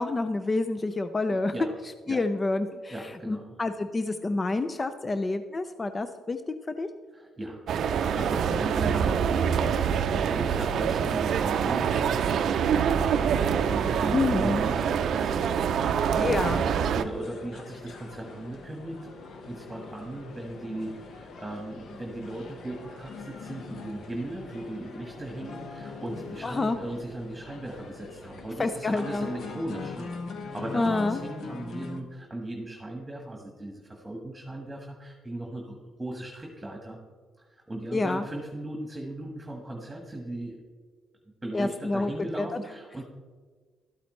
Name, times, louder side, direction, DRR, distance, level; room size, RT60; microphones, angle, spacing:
voice 1, 0.0-1.5 2.1-6.4 6.7-6.9 14.1-14.6 16.2-16.6 26.4-26.8 28.6-29.3 30.7-31.2 37.9-38.2 41.5-42.1 42.4-42.6, left 3 dB, 25° left, 10 dB, 0.4 m, -28 dB
voice 2, 1.3-1.7 2.1-2.2 2.9-3.6 7.1-13.2 13.5-16.5 16.8-19.1 19.4-30.1 30.5-37.0 37.4-40.6 41.4-43.0, right 1 dB, 15° right, 1 dB, 1.5 m, -38 dB
sound 1, 7.7-17.0, right 7 dB, 70° right, 0.5 m, -25 dB
sound 2, 12.3-32.0, left 4 dB, 70° left, 1.2 m, -43 dB
12.5 x 8.5 x 3.2 m, 1.5 s
cardioid pair, 90°, 0 cm